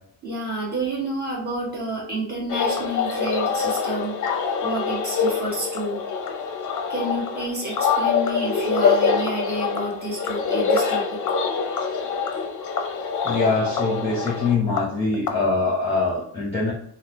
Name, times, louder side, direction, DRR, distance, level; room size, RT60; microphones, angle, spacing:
voice 1, 0.2-4.2 4.6-6.0 6.9-11.2, right 1 dB, 25° right, -4 dB, 1.2 m, -29 dB
sound 1, 2.5-15.3, left 5 dB, 50° left, 0.5 m, -25 dB
voice 2, 13.2-16.7, left 3 dB, 15° left, -6 dB, 0.8 m, -23 dB
3.7 x 2.0 x 3.0 m, 0.64 s
cardioid pair, 135°, 41 cm